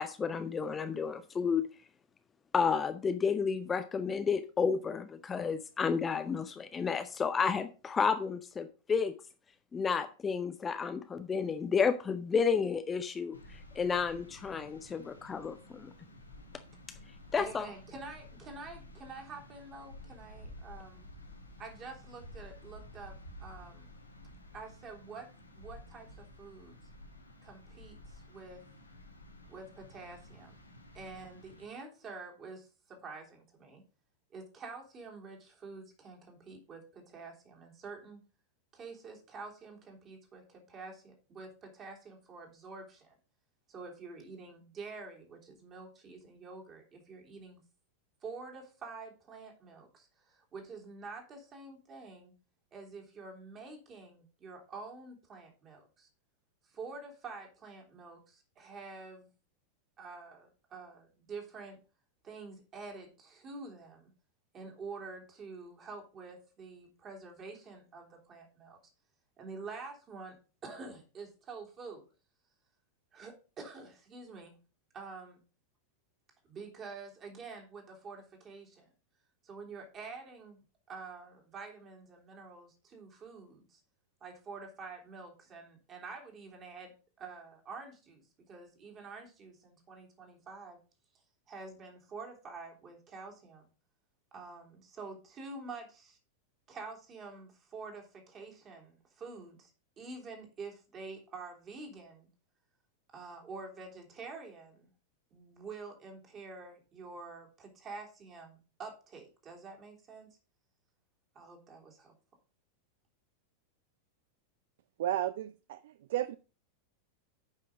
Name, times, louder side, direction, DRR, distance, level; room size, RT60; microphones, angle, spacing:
voice 1, 0.0-1.6 2.5-9.1 9.7-15.9 17.3-17.7, left 6 dB, 20° left, 0.6 m, -31 dB
sound 1, 13.3-31.7, left 1 dB, 85° left, 1.8 m, -52 dB
voice 2, 17.4-21.1 21.6-23.9 24.5-25.3 25.5-26.8 27.4-28.6 29.5-30.6 30.9-33.8 34.3-38.2 38.7-43.2 43.7-47.6 48.2-52.3 52.7-56.1 56.6-59.3 60.0-61.8 62.2-64.1 64.5-68.8 69.4-70.3 70.6-72.0 73.1-74.6 74.9-75.4 76.4-78.9 79.4-80.6 80.9-83.8 84.2-86.9 87.2-90.8 91.5-93.7 94.3-96.2 96.7-99.7 100.0-102.3 103.1-104.9 105.3-110.3 111.3-112.1, right 4 dB, 30° right, 3.2 m, -47 dB
voice 3, 115.0-116.3, right 13 dB, 55° right, 0.4 m, -33 dB
9.2 x 5.7 x 4.9 m
figure-of-eight pair, 90°, 0 cm